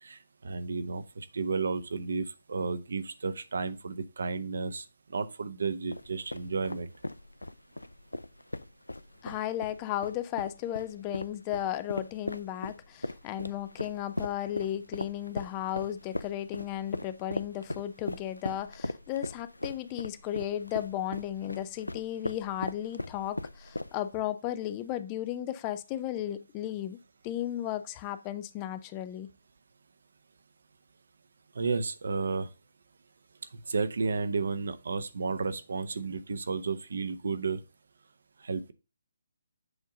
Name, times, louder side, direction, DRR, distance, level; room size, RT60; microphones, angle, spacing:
voice 1, 0.0-6.9 31.5-32.5 33.7-37.6 38.4-38.7, right 4 dB, 65° right, 0.7 m, -32 dB
sound 1, 5.9-24.2, left 1 dB, 90° left, 0.4 m, -38 dB
voice 2, 9.2-27.0 27.2-29.3, left 12 dB, 25° left, 0.4 m, -35 dB
7.9 x 2.7 x 4.9 m
figure-of-eight pair, 145°, 0 cm